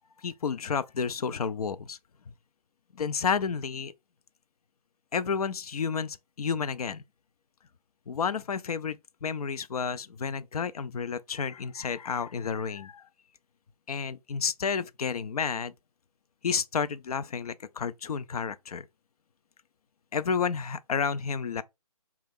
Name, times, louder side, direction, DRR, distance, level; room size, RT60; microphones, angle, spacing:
voice 1, 0.2-2.0 2.9-3.9 5.1-7.0 8.1-13.1 13.9-15.7 16.4-18.9 20.1-21.6, left 6 dB, 80° left, 0.4 m, -31 dB
3.7 x 2.3 x 3.4 m
hypercardioid pair, 160°, 19 cm